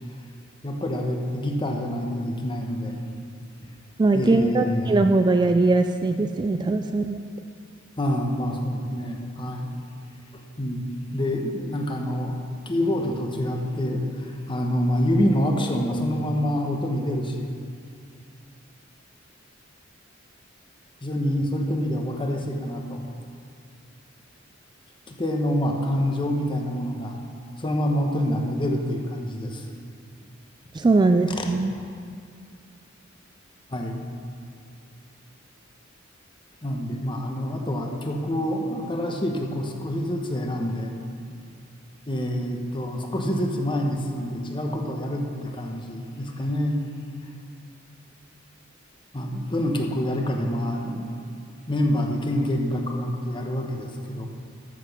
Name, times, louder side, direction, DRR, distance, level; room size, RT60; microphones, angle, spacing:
voice 1, 0.6-3.0 4.1-4.9 8.0-9.7 10.6-10.9 11.1-12.4 12.7-17.5 21.0-23.0 25.1-27.2 27.6-29.6 31.4-31.5 33.7-34.0 36.6-40.9 42.1-46.8 49.1-51.1 51.7-54.3, equal, 25° left, 1 dB, 1.0 m, -26 dB
voice 2, 4.0-7.2 30.7-31.7, right 3 dB, 20° right, 7 dB, 0.3 m, -21 dB
13.5 x 6.0 x 5.9 m, 2.4 s
head